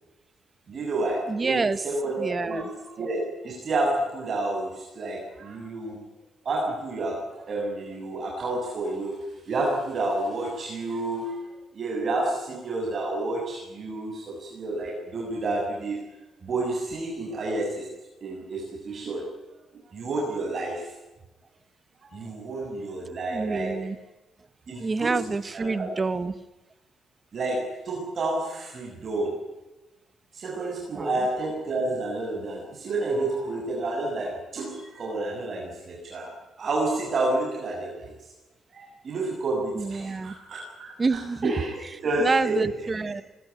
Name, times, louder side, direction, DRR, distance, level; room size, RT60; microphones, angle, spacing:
voice 1, 0.7-6.0 6.4-11.4 11.7-16.0 16.4-17.9 18.2-19.3 19.9-20.9 22.0-23.9 24.7-25.9 27.3-29.4 30.3-36.3 36.6-38.1 38.7-42.6, right 2 dB, 45° right, -2 dB, 7.5 m, -30 dB
voice 2, 1.3-1.8 2.2-2.7 23.3-23.9 24.8-26.4 30.9-31.1 39.7-40.3 41.0-41.5 42.2-43.2, right 4 dB, 30° right, 13 dB, 1.5 m, -27 dB
21.0 x 20.0 x 9.8 m, 1.1 s
cardioid pair, 90°, 0 cm